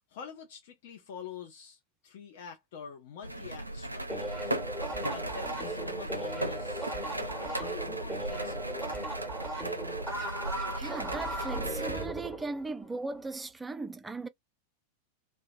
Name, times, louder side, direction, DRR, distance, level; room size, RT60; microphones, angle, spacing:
voice 1, 0.1-4.8 5.1-9.0, left 7 dB, 50° left, 0.6 m, -47 dB
sound 1, 3.2-12.1, right 1 dB, 85° right, 0.4 m, -37 dB
sound 2, 4.1-13.2, right 1 dB, 5° left, 1.2 m, -37 dB
voice 2, 10.8-14.3, right 3 dB, 10° right, 0.4 m, -38 dB
2.8 x 2.1 x 2.5 m
figure-of-eight pair, 90°, 0 cm